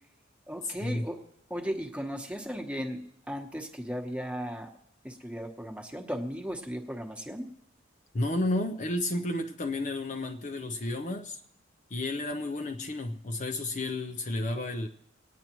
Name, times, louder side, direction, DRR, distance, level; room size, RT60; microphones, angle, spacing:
voice 1, 0.5-1.2 1.5-4.7 5.0-7.5, equal, 5° right, 2 dB, 1.1 m, -36 dB
voice 2, 8.1-11.4 11.9-14.9, left 1 dB, 40° left, 5 dB, 0.5 m, -32 dB
25.0 x 9.3 x 3.0 m, 0.75 s
head